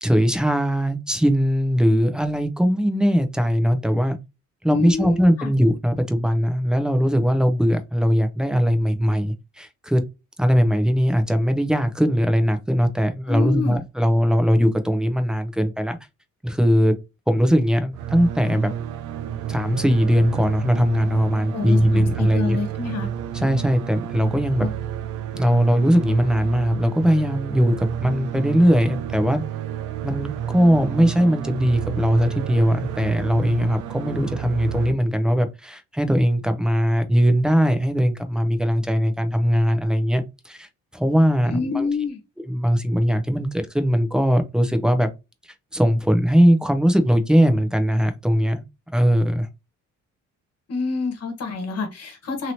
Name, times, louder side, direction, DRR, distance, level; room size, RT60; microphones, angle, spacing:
voice 1, 0.0-4.2 4.6-10.0 10.4-16.0 16.4-16.9 17.3-18.7 19.5-22.6 23.3-24.7 25.3-29.4 30.0-40.7 40.9-41.9 42.4-45.1 45.7-48.6 48.9-49.5, equal, 5° right, 0.6 m, -20 dB
voice 2, 4.7-5.5 13.3-13.8 21.5-23.1 24.6-24.7 41.5-42.2 50.7-52.5, left 5 dB, 55° left, 1.2 m, -27 dB
sound 1, 17.9-34.9, right 10 dB, 85° right, 0.5 m, -30 dB
2.9 x 2.8 x 2.7 m
cardioid pair, 90°, 30 cm